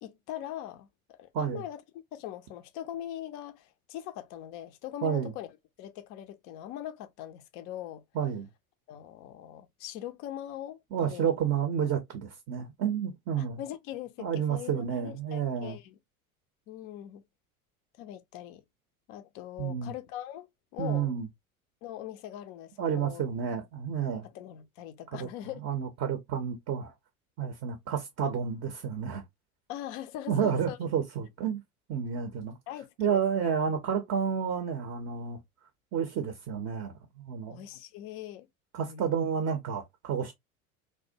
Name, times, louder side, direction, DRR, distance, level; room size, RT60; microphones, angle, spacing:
voice 1, 0.0-1.8 2.1-5.5 5.8-8.0 8.9-11.4 13.4-16.0 16.7-17.2 18.0-18.6 19.1-21.1 21.8-23.2 24.3-25.6 29.7-30.8 32.7-33.5 37.5-38.5 38.9-39.2, left 12 dB, 35° left, 0.4 m, -41 dB
voice 2, 5.0-5.3 8.1-8.5 10.9-13.6 14.2-15.8 19.6-19.9 20.8-21.3 22.8-24.3 25.1-25.3 25.6-26.9 27.4-29.2 30.3-31.6 31.9-32.6 33.0-35.4 35.9-37.6 38.7-40.3, right 7 dB, 30° right, 0.6 m, -30 dB
2.5 x 2.1 x 2.6 m
figure-of-eight pair, 70°, 43 cm